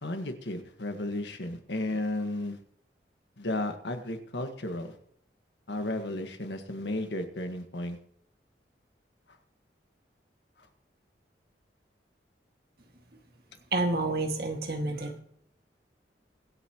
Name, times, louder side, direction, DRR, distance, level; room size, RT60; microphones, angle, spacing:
voice 1, 0.0-2.6 3.4-5.0 5.7-8.0 9.3-9.4 10.6-10.7, left 1 dB, 85° left, 6 dB, 1.6 m, -34 dB
voice 2, 13.7-15.2, right 2 dB, 60° right, 4 dB, 2.0 m, -29 dB
24.0 x 8.3 x 3.0 m, 0.67 s
head